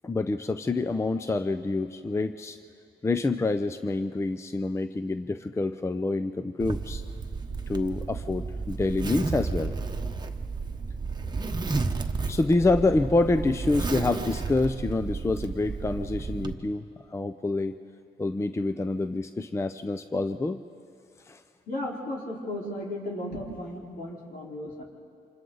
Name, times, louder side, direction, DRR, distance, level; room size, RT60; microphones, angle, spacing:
voice 1, 0.0-2.6 3.0-7.0 7.7-9.7 12.3-17.8 18.2-20.6 21.3-21.4, left 2 dB, 15° left, 10 dB, 0.5 m, -27 dB
Zipper (clothing), 6.6-16.5, right 4 dB, 25° right, 1.1 m, -32 dB
voice 2, 21.7-24.8, left 1 dB, 65° left, -3 dB, 4.1 m, -35 dB
28.5 x 26.0 x 4.0 m, 2.4 s
cardioid pair, 110°, 17 cm